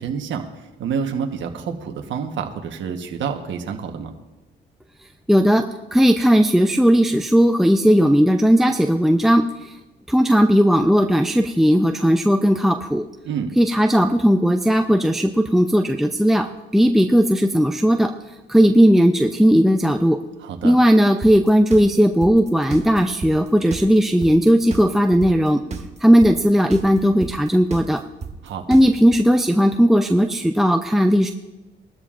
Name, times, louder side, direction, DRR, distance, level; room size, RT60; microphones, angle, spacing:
voice 1, 0.0-4.1 13.2-13.5 20.4-20.8 28.4-28.7, right 6 dB, 70° right, 4 dB, 1.2 m, -28 dB
voice 2, 5.3-5.6 5.9-9.8 10.1-13.0 13.6-16.5 16.7-20.2 20.6-25.6 26.0-28.0 28.7-31.3, equal, ahead, 4 dB, 0.5 m, -16 dB
sound 1, 21.2-29.2, right 5 dB, 35° right, 1.4 m, -32 dB
19.5 x 13.0 x 2.5 m, 1.1 s
cardioid pair, 90°, 20 cm